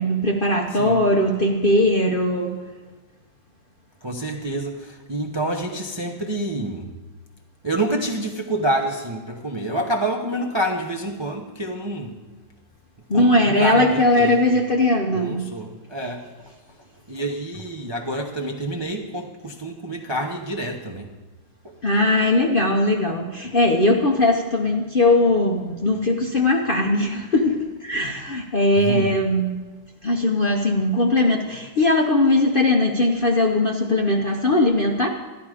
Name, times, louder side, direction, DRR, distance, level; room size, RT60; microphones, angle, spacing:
voice 1, 0.0-2.5 13.1-15.5 21.8-29.5 30.0-35.1, left 1 dB, 45° left, 1 dB, 0.7 m, -19 dB
voice 2, 0.7-1.0 4.0-6.9 7.6-12.2 13.1-14.6 15.1-16.2 17.1-21.1 28.7-29.2, right 1 dB, 30° right, 2 dB, 0.5 m, -27 dB
13.0 x 11.0 x 4.9 m, 1.3 s
omnidirectional pair, 1.9 m